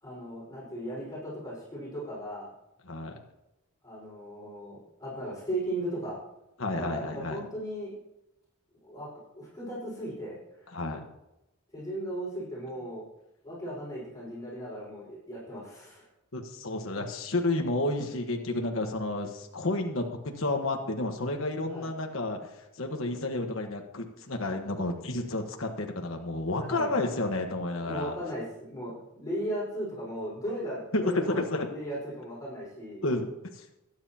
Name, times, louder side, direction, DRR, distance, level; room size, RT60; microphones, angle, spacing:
voice 1, 0.0-2.5 3.8-6.2 6.8-7.9 8.8-10.7 11.7-13.0 13.4-16.0 21.7-21.9 26.6-26.9 27.8-31.4 31.7-33.0, equal, 15° left, -7 dB, 4.9 m, -37 dB
voice 2, 2.9-3.2 6.6-7.4 10.7-11.0 16.3-28.1 30.9-31.7 33.0-33.3 33.5-33.6, left 2 dB, 65° left, 3 dB, 1.3 m, -31 dB
21.5 x 9.8 x 2.9 m, 0.91 s
head